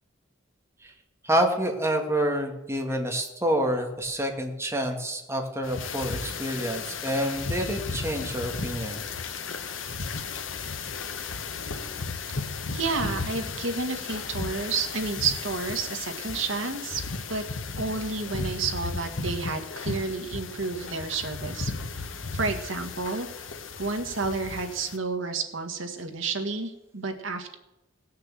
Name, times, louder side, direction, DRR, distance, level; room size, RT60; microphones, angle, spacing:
voice 1, 1.2-9.0, right 1 dB, 15° right, 2 dB, 1.8 m, -28 dB
sound 1, 5.6-25.0, left 4 dB, 80° left, 1.1 m, -35 dB
voice 2, 12.7-17.0 17.3-17.4 17.8-23.3 23.8-27.5, right 4 dB, 85° right, 5 dB, 1.7 m, -30 dB
17.5 x 6.6 x 7.6 m, 0.95 s
head